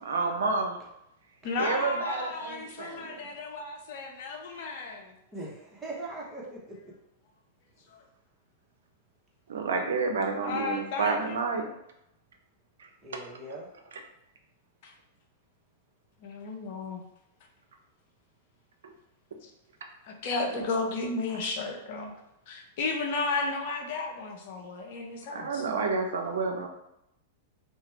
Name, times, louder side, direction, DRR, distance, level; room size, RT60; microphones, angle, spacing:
voice 1, 0.1-0.8 1.6-3.2 9.5-11.7 12.8-13.2 18.8-18.9 25.3-26.7, right 4 dB, 75° right, 4 dB, 0.5 m, -30 dB
voice 2, 1.4-5.1 7.9-8.0 10.4-11.4 14.8-14.9 16.2-17.0 19.4-19.5 20.0-22.2 22.5-25.6, left 3 dB, 55° left, 2 dB, 0.6 m, -33 dB
voice 3, 5.3-6.8 13.0-13.7, right 2 dB, 10° right, -5 dB, 1.0 m, -40 dB
2.8 x 2.2 x 3.2 m, 0.83 s
hypercardioid pair, 100°, 0 cm